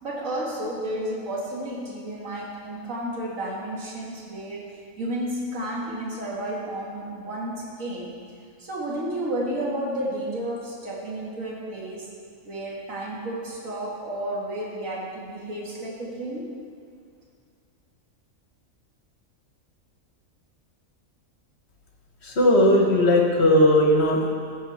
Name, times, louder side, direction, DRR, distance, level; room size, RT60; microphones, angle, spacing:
voice 1, 0.0-4.6 5.0-8.1 8.6-12.1 12.5-16.5, right 1 dB, 75° right, -4 dB, 2.2 m, -32 dB
voice 2, 22.2-24.3, left 1 dB, 50° left, 0 dB, 1.7 m, -18 dB
15.0 x 7.1 x 4.4 m, 2.2 s
omnidirectional pair, 1.4 m